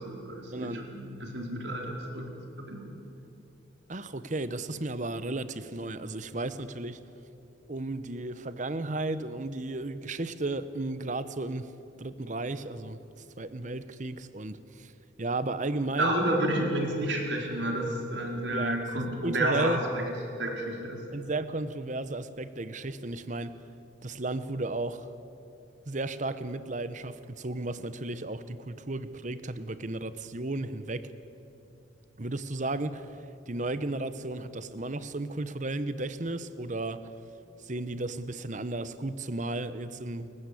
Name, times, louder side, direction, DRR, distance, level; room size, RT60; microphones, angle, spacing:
voice 1, 0.0-2.3 2.7-2.9 16.0-20.1 20.4-21.0, right 1 dB, 70° right, 1 dB, 4.4 m, -30 dB
voice 2, 0.5-0.8 3.9-7.0 7.7-11.7 12.0-14.9 15.2-16.1 18.5-19.8 21.1-23.5 24.0-25.1 25.9-31.1 32.2-37.1 37.6-40.3, right 2 dB, 40° right, 13 dB, 1.0 m, -34 dB
29.0 x 15.5 x 8.5 m, 2.8 s
head